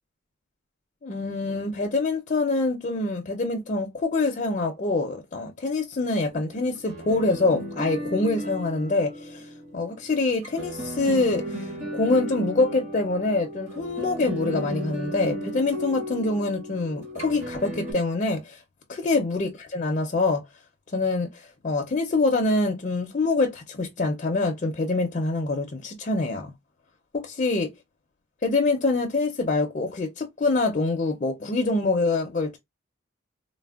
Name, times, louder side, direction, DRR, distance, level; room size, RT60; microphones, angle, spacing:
voice 1, 1.0-9.5 9.7-18.6 18.9-20.4 20.9-26.5 27.1-27.7 28.4-32.6, left 3 dB, 35° left, 0.4 m, -25 dB
sound 1, 6.3-17.9, equal, 35° right, 1.2 m, -35 dB
3.2 x 2.0 x 2.3 m
head